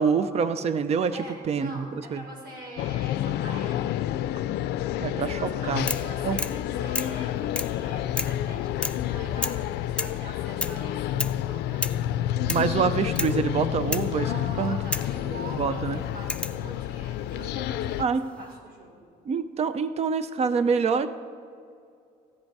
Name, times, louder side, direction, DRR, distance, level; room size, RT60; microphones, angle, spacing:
voice 1, 0.0-1.2 1.5-2.2 5.0-5.9 6.2-6.4 12.5-14.3 14.6-14.8 15.6-16.0 18.0-18.3 19.3-21.1, right 5 dB, 40° right, 12 dB, 0.6 m, -26 dB
voice 2, 1.1-3.9 5.3-11.9 14.2-19.0, right 2 dB, 70° right, -1 dB, 3.7 m, -43 dB
sound 1, 2.8-18.0, left 12 dB, 75° left, 0.4 m, -29 dB
sound 2, 5.9-6.1 6.4-6.6 6.9-7.2 7.6-7.8 8.2-8.4 8.8-9.1 9.4-9.6 10.0-10.2 10.6-10.8 11.2-11.4 11.8-12.0 12.5-12.7 13.2-13.4 13.9-14.1 14.9-15.1 16.3-16.6 17.8-18.3, left 2 dB, 5° left, 0.4 m, -31 dB
15.5 x 10.5 x 4.7 m, 2.4 s
cardioid pair, 110°, 17 cm